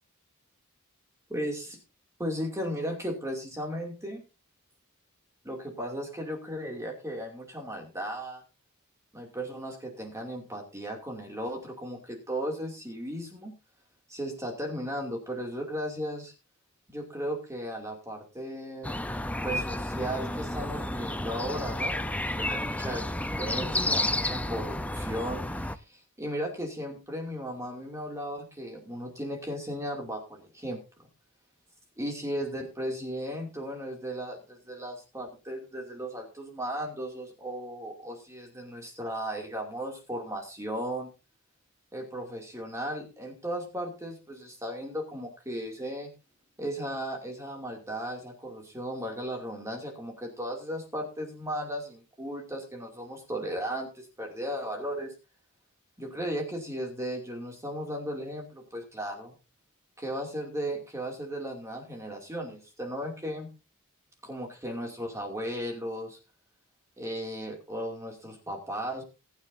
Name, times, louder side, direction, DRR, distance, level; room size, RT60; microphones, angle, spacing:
voice 1, 1.3-1.8 2.2-4.2 5.4-8.4 9.1-13.5 14.1-16.3 16.9-18.9 19.4-31.1 32.0-41.1 41.9-46.1 46.6-55.1 56.0-59.3 60.0-63.5 64.2-66.2 67.0-69.0, equal, 15° right, 1 dB, 2.6 m, -36 dB
sound 1, 18.8-25.8, left 1 dB, 5° left, 0.6 m, -31 dB
20.0 x 9.1 x 2.7 m, 0.30 s
head